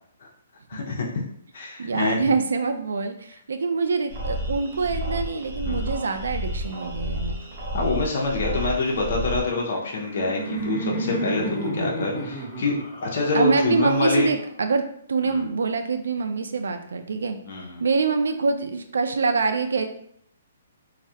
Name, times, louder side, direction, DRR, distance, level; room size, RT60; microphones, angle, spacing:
voice 1, 0.7-1.2 1.5-2.2 5.6-5.9 7.7-14.3 15.2-15.5 17.5-17.8, left 3 dB, 55° left, -2 dB, 0.5 m, -26 dB
voice 2, 1.8-7.4 13.3-17.4 17.8-19.9, right 4 dB, 85° right, 7 dB, 0.3 m, -25 dB
sound 1, 4.1-9.4, equal, 35° right, 1.0 m, -31 dB
Laughter, 9.6-14.6, right 2 dB, 5° right, 0.8 m, -31 dB
2.3 x 2.0 x 2.7 m, 0.68 s
hypercardioid pair, 160°, 0 cm